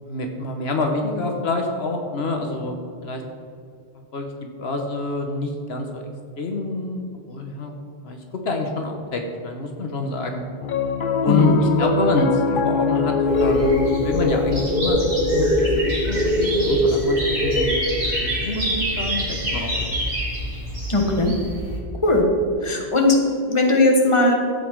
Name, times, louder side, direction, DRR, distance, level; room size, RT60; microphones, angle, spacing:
voice 1, 0.0-3.2 4.1-6.0 6.4-7.7 8.0-8.2 8.4-10.4 11.2-17.8 18.2-20.0, left 2 dB, 80° left, 3 dB, 1.3 m, -26 dB
Piano, 10.6-21.1, left 5 dB, 60° left, 0.8 m, -26 dB
voice 2, 11.3-11.6 20.9-21.3 22.0-22.2 22.6-23.2 23.5-24.3, left 2 dB, 30° left, 1 dB, 1.5 m, -18 dB
sound 1, 13.3-21.8, equal, 60° right, 2.6 m, -23 dB
12.5 x 8.3 x 4.6 m, 2.4 s
omnidirectional pair, 1.0 m